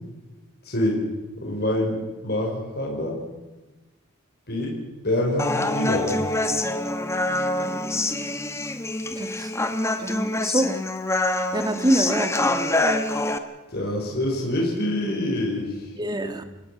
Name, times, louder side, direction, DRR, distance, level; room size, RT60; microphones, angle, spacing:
voice 1, 0.6-1.0 1.4-2.0 2.2-3.2 4.5-4.8 5.0-6.1 13.7-15.9, left 1 dB, 50° left, -1 dB, 5.4 m, -25 dB
Human voice, 5.4-13.4, left 2 dB, 15° left, 1.2 m, -25 dB
voice 2, 9.1-9.5 10.0-10.7 11.5-12.3 16.0-16.4, right 1 dB, 20° right, 9 dB, 1.6 m, -25 dB
29.0 x 17.5 x 6.0 m, 1.1 s
head